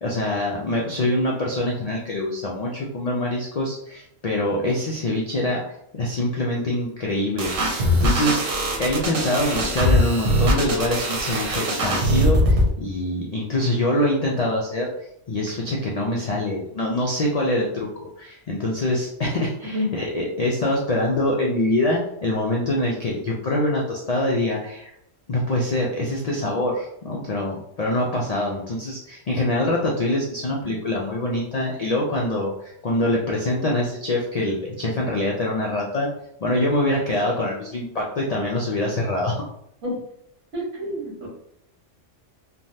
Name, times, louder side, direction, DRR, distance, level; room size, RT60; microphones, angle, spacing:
voice 1, 0.0-7.7 8.0-8.4 8.8-14.9 15.3-24.9 25.3-36.1 36.4-39.4, left 1 dB, 75° left, -2 dB, 0.3 m, -24 dB
sound 1, 7.4-12.7, equal, 90° right, 1.1 m, -21 dB
voice 2, 40.5-41.3, left 1 dB, 70° right, -4 dB, 1.4 m, -28 dB
3.2 x 2.2 x 2.7 m, 0.75 s
omnidirectional pair, 1.3 m